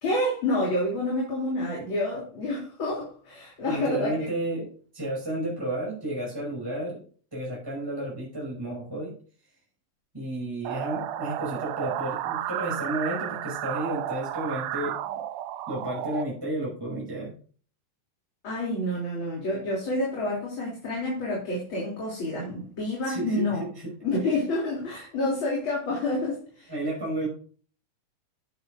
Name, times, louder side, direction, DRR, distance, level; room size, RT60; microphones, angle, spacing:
voice 1, 0.0-4.3 18.4-23.7 24.0-26.7, left 1 dB, 40° left, 3.9 m, -28 dB
voice 2, 3.7-7.0 7.3-9.1 10.1-15.0 15.7-17.3 23.0-23.4 26.7-27.3, right 1 dB, 5° right, 5.5 m, -32 dB
sound 1, 10.6-16.2, right 12 dB, 90° right, 2.3 m, -32 dB
11.5 x 9.6 x 2.6 m
omnidirectional pair, 3.6 m